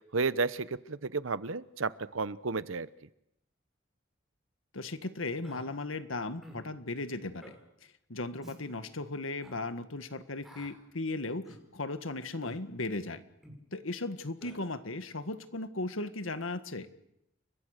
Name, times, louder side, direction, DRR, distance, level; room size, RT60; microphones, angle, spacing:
voice 1, 0.1-2.9, right 4 dB, 80° right, 16 dB, 0.9 m, -32 dB
voice 2, 4.7-7.5 8.1-13.2 13.7-16.9, left 2 dB, 85° left, 10 dB, 1.7 m, -36 dB
Human voice, 5.4-5.6 6.4-6.7 7.4-7.6 8.4-8.6 9.4-9.6 10.4-10.7 11.4-11.6 12.4-12.6 13.4-13.6 14.4-14.6, equal, ahead, 6.0 m, -50 dB
29.5 x 24.0 x 6.7 m, 0.82 s
head